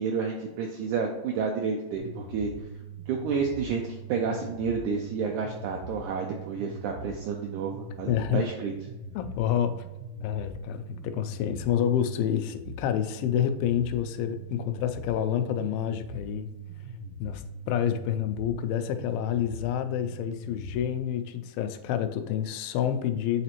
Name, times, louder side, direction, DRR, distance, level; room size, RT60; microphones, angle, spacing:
voice 1, 0.0-2.5 3.1-3.8 4.1-8.7, right 5 dB, 85° right, 1 dB, 1.7 m, -30 dB
sound 1, 1.9-21.0, right 2 dB, 55° right, 1.1 m, -42 dB
voice 2, 8.1-8.4 9.2-9.8 10.2-16.5 17.2-23.4, left 10 dB, 85° left, 8 dB, 2.3 m, -28 dB
8.1 x 4.1 x 2.9 m, 1.0 s
omnidirectional pair, 4.1 m